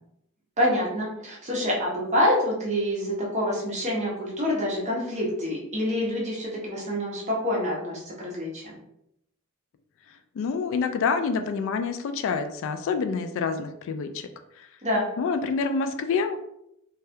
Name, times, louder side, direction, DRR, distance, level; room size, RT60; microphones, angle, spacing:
voice 1, 0.6-8.8 14.8-15.1, left 1 dB, 35° right, -4 dB, 1.0 m, -26 dB
voice 2, 10.4-14.3 14.6-14.7 15.2-16.4, left 5 dB, 65° left, 9 dB, 0.3 m, -27 dB
3.3 x 2.2 x 2.7 m, 0.79 s
head